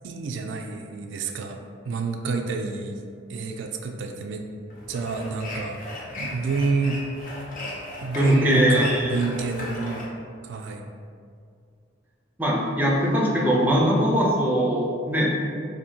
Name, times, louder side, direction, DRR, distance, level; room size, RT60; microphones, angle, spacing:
voice 1, 0.0-1.6 1.9-3.0 3.3-4.5 4.9-5.8 6.2-7.1 8.0-10.0 10.4-10.9, right 4 dB, 75° right, 4 dB, 0.3 m, -28 dB
sound 1, 4.7-10.1, left 1 dB, 45° left, 0.6 m, -36 dB
voice 2, 8.1-9.2 12.4-15.3, equal, 10° right, -3 dB, 0.4 m, -21 dB
2.7 x 2.6 x 4.3 m, 2.3 s
head